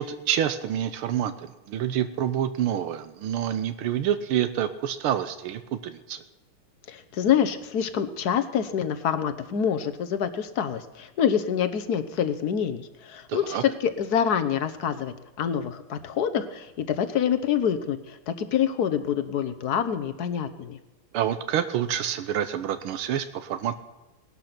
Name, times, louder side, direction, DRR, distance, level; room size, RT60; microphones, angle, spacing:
voice 1, 0.0-6.2 13.3-13.6 21.1-23.8, right 10 dB, 90° right, 10 dB, 1.7 m, -27 dB
voice 2, 6.9-20.8, left 8 dB, 55° left, 10 dB, 1.3 m, -26 dB
19.0 x 12.0 x 6.0 m, 1.0 s
omnidirectional pair, 2.3 m